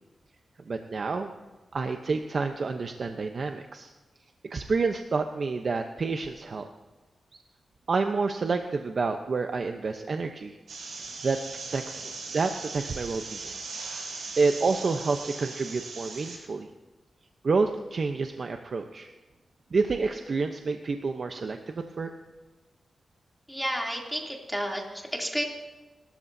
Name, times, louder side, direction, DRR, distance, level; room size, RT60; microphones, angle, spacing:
voice 1, 0.7-1.3 1.7-3.9 4.5-6.7 7.9-10.6 11.2-11.4 11.7-12.0 12.3-13.5 14.4-16.7 17.4-19.1 19.7-22.1, right 4 dB, 55° right, 5 dB, 0.9 m, -28 dB
sound 1, 10.7-16.4, right 4 dB, 85° right, 5.5 m, -39 dB
voice 2, 23.5-25.4, equal, 5° right, -1 dB, 3.1 m, -31 dB
29.5 x 13.5 x 2.8 m, 1.2 s
wide cardioid pair, 85°, 0 cm